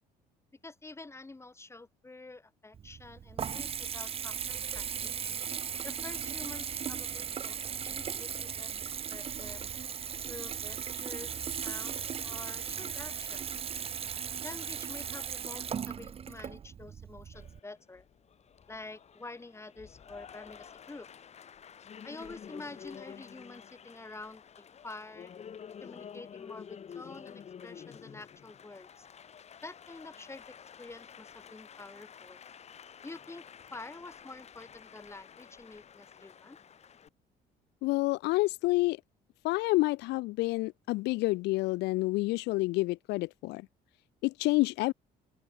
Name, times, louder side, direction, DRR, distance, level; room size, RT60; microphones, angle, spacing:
voice 1, 0.6-5.3 5.8-7.6 7.8-8.7 9.1-9.7 10.2-13.4 14.4-18.1 18.7-21.1 22.0-25.3 25.8-29.1 29.6-32.4 33.0-36.6, left 3 dB, 15° left, 6.4 m, -48 dB
Water tap faucet / Bathtub (filling or washing) / Trickle dribble, 2.7-17.6, right 7 dB, 35° right, 0.7 m, -37 dB
Applause, 17.3-37.1, left 8 dB, 40° left, 1.6 m, -50 dB
voice 2, 37.8-39.0 39.4-43.6 44.2-44.9, left 21 dB, 85° left, 0.6 m, -28 dB
open air
cardioid pair, 110°, 17 cm